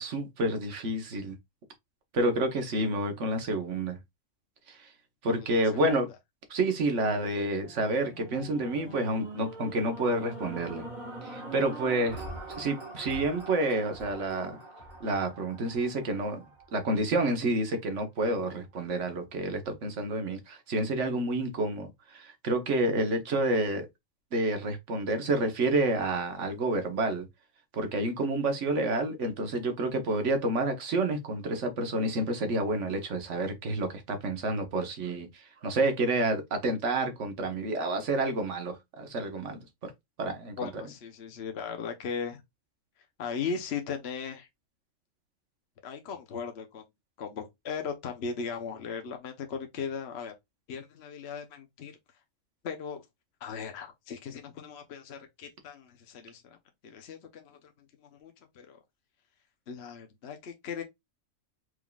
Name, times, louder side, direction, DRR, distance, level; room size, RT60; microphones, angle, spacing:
voice 1, 0.0-1.4 2.1-4.0 4.7-4.9 5.2-6.1 6.5-10.8 11.2-12.2 12.6-14.6 15.0-16.4 16.7-23.9 24.3-27.3 27.7-39.9 40.2-40.8, right 2 dB, 60° right, 1.4 m, -29 dB
voice 2, 5.3-6.0 40.6-42.4 43.2-44.5 45.8-46.8 47.2-50.3 50.7-51.9 52.6-53.0 53.4-56.6 56.8-57.6 58.2-58.8 59.7-60.8, left 6 dB, 55° left, 1.0 m, -37 dB
sound 1, 7.0-17.3 17.9-18.0, right 2 dB, 35° right, 1.6 m, -44 dB
4.8 x 3.6 x 2.3 m
omnidirectional pair, 1.4 m